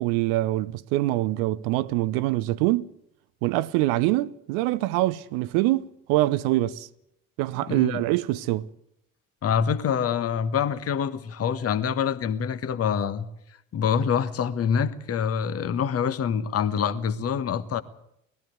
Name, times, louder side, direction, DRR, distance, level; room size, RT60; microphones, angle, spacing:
voice 1, 0.0-2.9 3.4-6.9 7.4-8.7, right 17 dB, 55° right, 0.8 m, -24 dB
voice 2, 7.7-8.0 9.4-13.3 13.7-17.8, left 7 dB, 35° left, 1.4 m, -26 dB
20.0 x 14.5 x 9.3 m
figure-of-eight pair, 55°, 40 cm